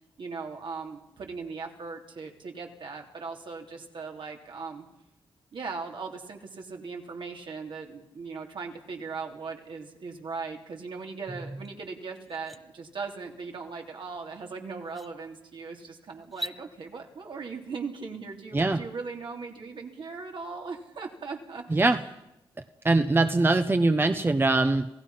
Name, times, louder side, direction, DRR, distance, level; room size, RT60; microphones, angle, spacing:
voice 1, 0.2-4.9 5.5-21.8, right 4 dB, 65° right, 2 dB, 3.5 m, -39 dB
sound 1, 11.6-11.7 12.2-12.6 14.2-14.3 14.8-15.1 16.2-16.6, right 1 dB, ahead, 1.3 m, -39 dB
voice 2, 22.8-24.9, right 2 dB, 25° right, 8 dB, 1.1 m, -22 dB
27.5 x 16.5 x 5.8 m, 0.89 s
cardioid pair, 65°, 9 cm